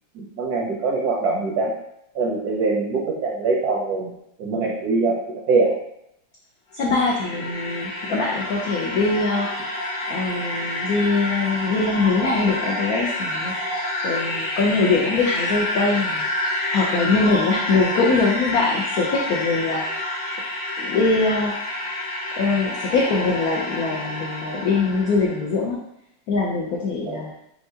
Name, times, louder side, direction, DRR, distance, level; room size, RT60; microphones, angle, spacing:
voice 1, 0.1-1.7 2.1-4.1 4.4-5.2 5.5-5.7 27.1-27.2, right 3 dB, 70° right, -3 dB, 0.9 m, -23 dB
voice 2, 6.7-9.8 10.1-20.0 20.8-21.5 22.4-25.8 26.3-27.3, left 3 dB, 85° left, -3 dB, 0.8 m, -23 dB
sound 1, 6.7-25.4, left 1 dB, 65° left, 1.4 m, -28 dB
4.5 x 3.5 x 2.7 m, 0.78 s
omnidirectional pair, 2.3 m